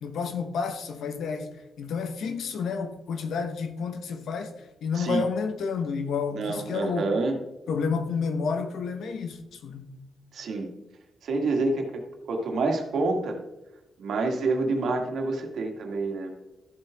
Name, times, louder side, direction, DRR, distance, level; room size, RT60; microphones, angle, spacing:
voice 1, 0.0-7.1 7.7-9.9, left 5 dB, 80° left, 1.1 m, -30 dB
voice 2, 6.3-7.4 10.3-10.7 11.2-12.0 12.3-13.4 14.0-16.3, right 3 dB, 70° right, 1.8 m, -27 dB
13.5 x 7.5 x 3.5 m
wide cardioid pair, 150°, 0 cm